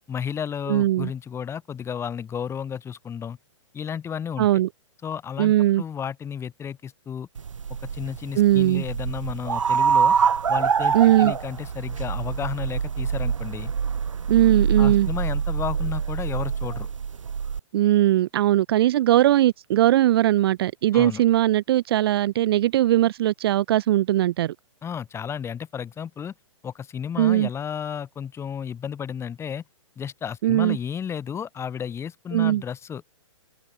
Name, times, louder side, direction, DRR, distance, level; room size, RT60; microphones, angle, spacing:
voice 1, 0.1-3.4 3.7-4.6 5.0-7.3 7.8-10.2 10.5-13.7 14.8-16.9 20.9-21.2 24.8-26.3 26.6-29.6 30.0-33.0, left 8 dB, 15° left, 3.8 m, -32 dB
voice 2, 0.7-1.1 4.4-4.7 5.4-5.8 8.4-8.8 10.9-11.3 14.3-15.1 17.7-24.5 27.2-27.5 30.4-30.8 32.3-32.6, right 13 dB, 50° right, 0.5 m, -19 dB
sound 1, 7.4-17.6, right 6 dB, 75° right, 3.3 m, -25 dB
figure-of-eight pair, 120°, 17 cm